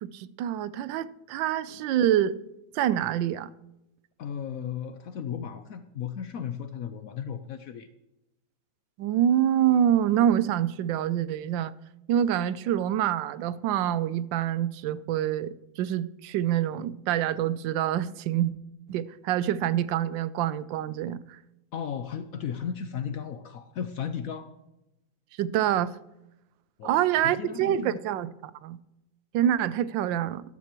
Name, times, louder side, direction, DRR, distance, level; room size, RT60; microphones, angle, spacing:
voice 1, 0.0-2.4 2.7-3.5 9.0-11.7 12.1-18.5 18.9-21.4 25.4-26.0 26.8-28.8 29.3-30.4, right 10 dB, 85° right, 1.3 m, -26 dB
voice 2, 4.2-7.9 21.7-24.5 26.8-28.0, left 8 dB, 70° left, 0.8 m, -35 dB
13.5 x 12.5 x 3.0 m
omnidirectional pair, 2.0 m